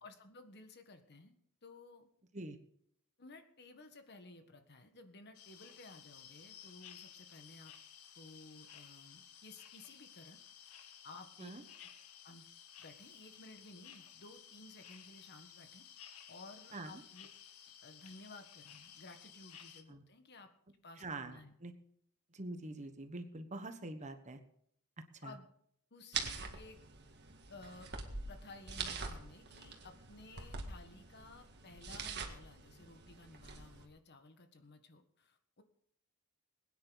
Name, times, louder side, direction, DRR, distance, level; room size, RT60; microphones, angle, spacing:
voice 1, 0.0-1.4 1.6-2.1 3.2-7.7 8.1-10.4 11.0-11.5 11.8-11.9 12.2-12.4 12.8-17.3 17.8-20.5 20.8-21.5 25.2-25.5 25.9-26.8 27.5-28.0 28.3-35.6, left 3 dB, 50° left, 7 dB, 1.5 m, -56 dB
sound 1, 5.3-19.8, left 9 dB, 85° left, 1.4 m, -56 dB
voice 2, 21.0-21.7 22.3-24.4 25.2-25.3, right 2 dB, 30° right, 8 dB, 1.2 m, -45 dB
sound 2, 26.1-33.9, right 5 dB, 50° right, 1.9 m, -45 dB
21.5 x 9.7 x 4.0 m, 0.68 s
head